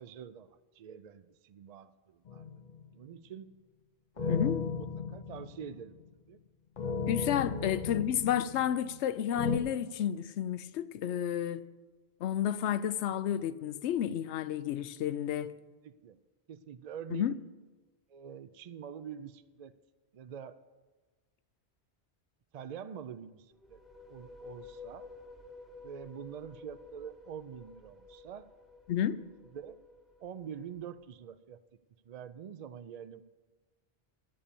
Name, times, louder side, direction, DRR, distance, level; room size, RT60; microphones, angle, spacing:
voice 1, 0.0-2.5 2.9-3.5 4.2-6.0 6.3-6.4 7.5-8.0 15.8-16.2 16.5-17.3 18.1-19.7 20.1-20.6 22.5-23.8 24.1-25.0 25.8-28.5 29.5-29.8 30.2-31.6 32.1-33.2, right 8 dB, 55° right, 0.4 m, -45 dB
sound 1, 2.3-2.9 4.2-6.0 6.8-9.0 9.4-9.6, left 6 dB, 50° left, 0.7 m, -35 dB
voice 2, 4.3-4.6 7.1-11.7 12.2-15.5 17.1-17.3 28.9-29.2, left 10 dB, 90° left, 0.9 m, -31 dB
sound 2, 23.5-31.1, left 3 dB, ahead, 0.7 m, -52 dB
11.0 x 8.7 x 6.9 m
omnidirectional pair, 1.1 m